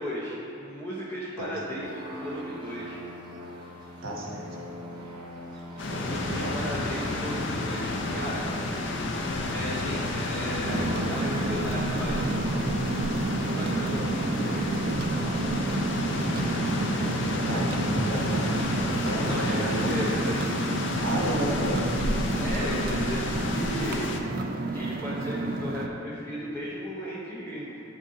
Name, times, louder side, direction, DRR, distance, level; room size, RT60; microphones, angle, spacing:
voice 1, 0.0-3.0 6.0-8.4 9.5-12.3 13.4-14.7 19.3-20.6 22.4-24.1 24.7-27.8, equal, 10° left, -8 dB, 0.6 m, -35 dB
sound 1, 1.8-20.8, equal, 20° right, 0.9 m, -42 dB
voice 2, 4.0-4.4 5.9-6.6 17.2-18.6 19.0-20.0 21.0-21.9 22.9-23.1, equal, 75° right, -3 dB, 1.3 m, -32 dB
sound 2, 5.8-24.2, left 2 dB, 55° left, 0.5 m, -31 dB
sound 3, 10.7-25.9, right 2 dB, 40° right, 0.3 m, -30 dB
9.7 x 4.0 x 3.7 m, 2.9 s
head